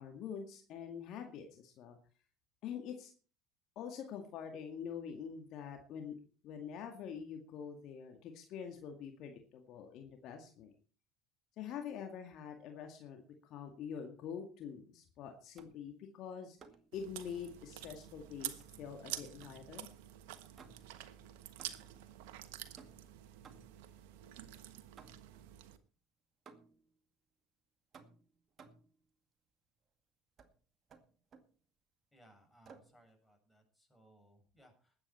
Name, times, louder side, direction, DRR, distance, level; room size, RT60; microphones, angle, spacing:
voice 1, 0.0-2.0 2.6-3.1 3.8-6.1 6.4-10.7 11.6-16.6 16.9-19.9, left 7 dB, 55° left, 4 dB, 2.1 m, -45 dB
Switches Flipped Clicky, 15.6-15.9 16.6-17.0 18.6-19.7 20.5-21.1 21.6-22.1 22.8-23.9 25.0-25.4 26.5-26.9 27.9-29.0 30.4-30.6 30.9-31.6 32.6-33.0, right 5 dB, 40° right, 2.1 m, -59 dB
Chewing mastication, 16.9-25.8, right 13 dB, 70° right, 1.2 m, -48 dB
voice 2, 32.1-35.0, right 1 dB, 10° left, 2 dB, 7.0 m, -65 dB
20.5 x 8.7 x 4.4 m, 0.39 s
hypercardioid pair, 70°, 0 cm